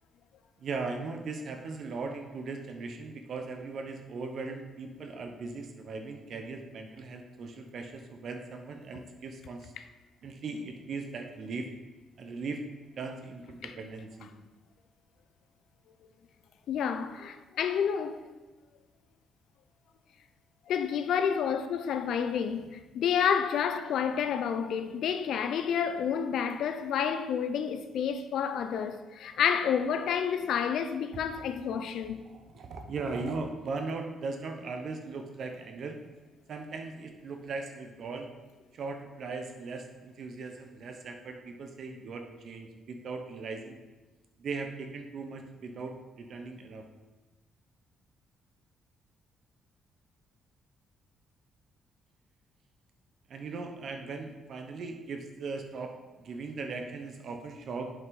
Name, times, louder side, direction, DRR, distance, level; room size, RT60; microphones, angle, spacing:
voice 1, 0.6-9.7 10.2-11.7 12.2-12.6 13.0-14.3 32.3-36.0 36.5-38.3 38.7-43.8 44.4-46.9 53.3-57.9, right 4 dB, 60° right, 0.9 m, -38 dB
voice 2, 16.7-18.2 20.7-32.3, left 7 dB, 75° left, 0.5 m, -29 dB
7.7 x 5.4 x 4.0 m
cardioid pair, 90°, 0 cm